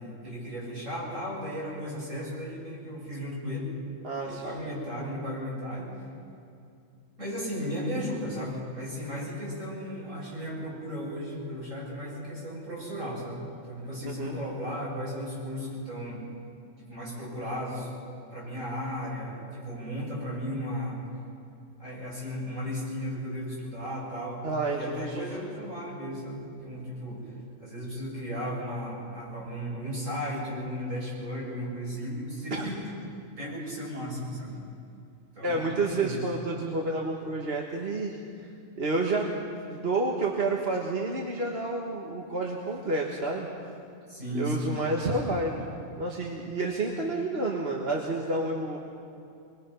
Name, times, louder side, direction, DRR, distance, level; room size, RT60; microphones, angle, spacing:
voice 1, 0.0-3.7 4.2-5.9 7.2-16.2 16.8-17.9 18.3-21.0 21.8-27.3 27.6-32.8 33.4-34.6 35.3-36.1 44.1-44.7, equal, 70° right, -6 dB, 7.7 m, -35 dB
voice 2, 4.0-4.6 14.1-14.4 24.4-25.3 32.5-32.7 35.4-38.5 38.8-39.3 39.7-43.5 44.3-45.6 46.0-48.8, right 2 dB, 50° right, -1 dB, 1.8 m, -30 dB
24.0 x 22.0 x 5.7 m, 2.5 s
omnidirectional pair, 1.4 m